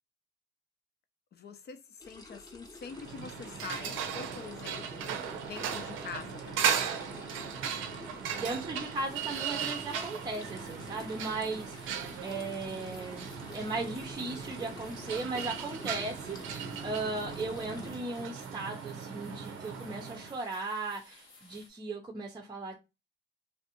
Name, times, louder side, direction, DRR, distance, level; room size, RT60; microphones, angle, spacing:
voice 1, 1.3-5.1 5.4-6.8, left 6 dB, 55° left, 0.7 m, -45 dB
sound 1, 2.0-17.9, left 2 dB, 20° left, 0.8 m, -50 dB
sound 2, 2.9-20.4, right 7 dB, 90° right, 0.5 m, -37 dB
voice 2, 8.4-13.3 13.5-22.8, right 3 dB, 20° right, 0.6 m, -37 dB
sound 3, 8.9-21.7, left 2 dB, 85° left, 1.3 m, -57 dB
3.4 x 2.5 x 2.8 m
cardioid pair, 90°, 20 cm